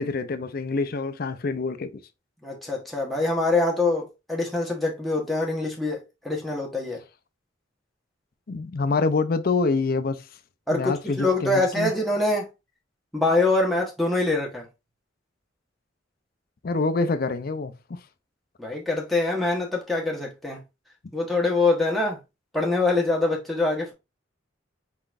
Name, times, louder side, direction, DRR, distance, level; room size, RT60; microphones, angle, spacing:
voice 1, 0.0-2.0 8.5-10.3 10.7-11.9 16.6-18.0, left 3 dB, 50° left, 0.5 m, -26 dB
voice 2, 2.4-7.0 10.7-12.5 13.1-14.6 18.6-20.6 21.1-22.2 22.5-23.9, left 2 dB, ahead, 1.1 m, -24 dB
4.5 x 3.9 x 2.5 m
head